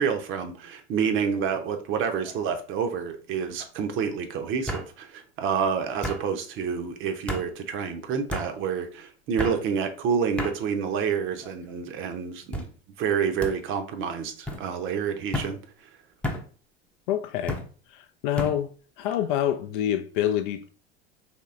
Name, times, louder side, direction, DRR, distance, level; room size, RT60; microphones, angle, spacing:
voice 1, 0.0-12.7 13.0-15.6, right 6 dB, 35° right, 0.7 m, -28 dB
sound 1, 1.2-1.6 2.0-2.5 3.6-3.7 4.7-4.9 6.0-6.2 7.3-7.5 8.3-8.5 9.4-9.6 10.4-10.6 11.3-11.7 12.5-12.7 13.4-13.6 14.5-14.6 15.3-15.5 16.2-16.5 17.5-17.7 18.4-18.6, equal, 5° left, 0.6 m, -32 dB
voice 2, 17.1-17.6 17.9-20.7, left 11 dB, 50° left, 0.4 m, -27 dB
4.3 x 3.1 x 2.4 m
figure-of-eight pair, 75°, 33 cm